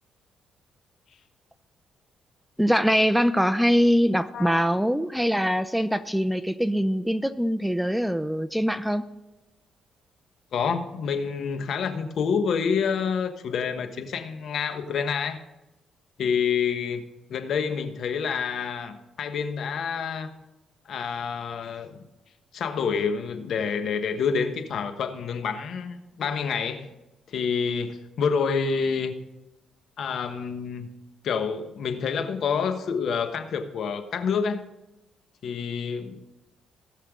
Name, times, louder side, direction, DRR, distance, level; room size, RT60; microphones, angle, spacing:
voice 1, 2.6-9.1, equal, ahead, 11 dB, 0.6 m, -23 dB
voice 2, 4.3-4.7 10.5-15.4 16.2-20.3 20.9-22.1 22.5-26.9 27.3-29.2 30.0-30.9 31.2-34.7 35.4-36.2, left 6 dB, 65° left, 8 dB, 1.2 m, -28 dB
18.5 x 6.6 x 3.7 m, 1.0 s
cardioid pair, 90°, 0 cm